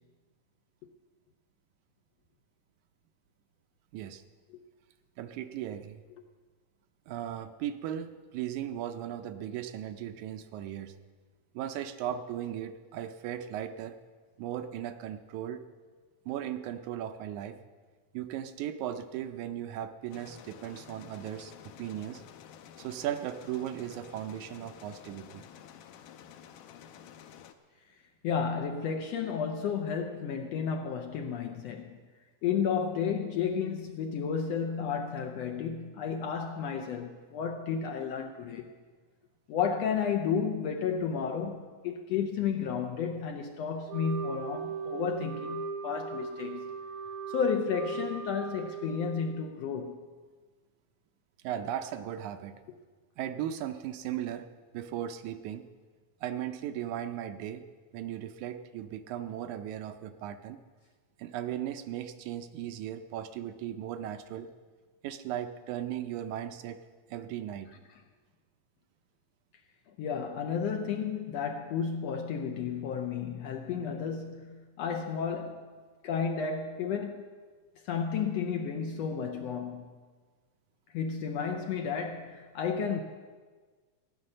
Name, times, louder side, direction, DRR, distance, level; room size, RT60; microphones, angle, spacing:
voice 1, 3.9-4.2 5.2-6.0 7.1-10.9 11.5-14.0 14.4-15.6 16.3-17.6 18.1-22.2 22.8-25.4 51.4-52.6 53.2-54.5 54.7-55.6 56.2-57.6 57.9-60.6 61.2-64.5 65.0-66.8 67.1-67.7, right 11 dB, 80° right, 2.0 m, -37 dB
sound 1, 20.1-27.5, left 9 dB, 90° left, 2.3 m, -51 dB
voice 2, 28.2-32.0 32.4-38.7 39.5-46.7 47.3-50.0 70.0-75.7 76.0-77.2 77.8-79.9 80.9-83.0, left 6 dB, 75° left, 1.6 m, -32 dB
Wind instrument woodwind instrument, 43.9-49.5, right 5 dB, 65° right, 1.4 m, -38 dB
16.0 x 9.8 x 6.5 m
omnidirectional pair, 3.6 m